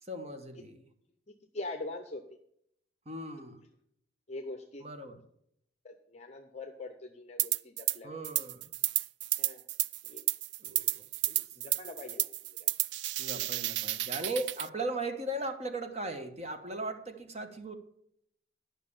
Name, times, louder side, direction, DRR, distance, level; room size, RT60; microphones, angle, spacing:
voice 1, 0.0-0.9 3.0-3.6 4.8-5.2 8.0-8.7 10.6-11.0 13.2-17.7, right 1 dB, 35° right, 7 dB, 1.2 m, -38 dB
voice 2, 1.3-2.2 4.3-4.8 5.8-8.1 9.4-9.6 10.1-10.2 11.3-12.3 12.6-12.7, left 2 dB, 35° left, 5 dB, 0.8 m, -43 dB
sound 1, 7.4-8.0 8.2-14.7, right 15 dB, 70° right, 0.3 m, -32 dB
11.0 x 5.9 x 7.1 m, 0.72 s
head